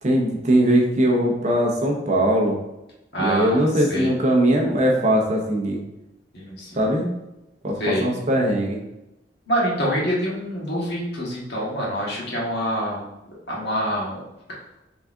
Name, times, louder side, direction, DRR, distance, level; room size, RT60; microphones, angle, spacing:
voice 1, 0.0-2.5 3.2-5.8 6.8-7.1 7.6-8.8, right 1 dB, 40° right, 0 dB, 0.8 m, -20 dB
voice 2, 3.1-4.1 6.3-6.8 7.8-8.1 9.5-13.0 13.5-14.2, equal, 60° left, -5 dB, 1.6 m, -26 dB
4.0 x 3.5 x 3.6 m, 0.92 s
head